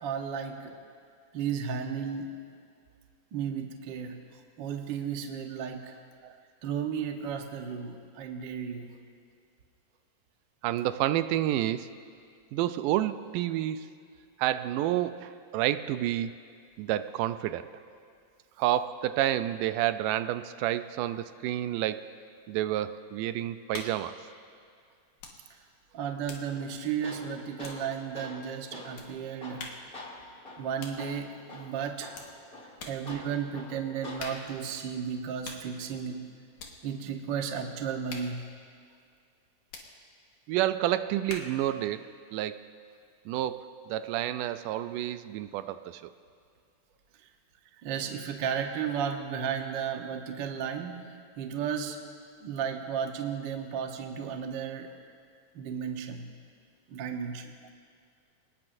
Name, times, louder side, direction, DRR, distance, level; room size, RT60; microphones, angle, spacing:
voice 1, 0.0-0.7 1.3-2.3 3.3-6.0 6.6-8.9 25.9-29.7 30.6-32.2 32.8-36.3 36.8-38.4 47.8-51.0 51.4-52.0 52.4-54.9 55.5-56.3 56.9-57.5, right 7 dB, 65° right, 3 dB, 1.1 m, -34 dB
voice 2, 10.6-11.9 12.5-13.9 14.4-16.4 16.8-17.7 18.6-22.2 22.5-24.2 40.5-42.6 43.3-46.1, right 13 dB, 85° right, 12 dB, 2.1 m, -29 dB
sound 1, 23.7-24.1 25.2-25.5 25.7-28.1 29.0-29.2 29.6-30.0 30.8-31.1 32.1-32.4 32.8-33.1 34.2-34.6 35.4-35.7 36.6-36.8 38.1-38.4 39.7-39.9 41.3-41.7, left 4 dB, 70° left, 3.0 m, -44 dB
Tools, 26.5-34.5, left 2 dB, 25° left, 1.4 m, -47 dB
27.0 x 19.5 x 2.7 m, 2.2 s
omnidirectional pair, 3.7 m